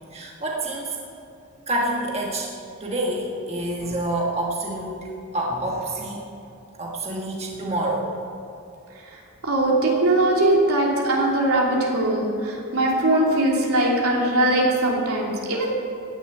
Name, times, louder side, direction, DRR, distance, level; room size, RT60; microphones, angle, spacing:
voice 1, 0.1-1.0 1.7-2.5 2.8-6.2 6.8-8.1, right 1 dB, 30° right, -2 dB, 1.4 m, -27 dB
voice 2, 9.1-15.7, right 1 dB, 80° right, -3 dB, 3.0 m, -21 dB
15.5 x 7.1 x 9.1 m, 2.8 s
head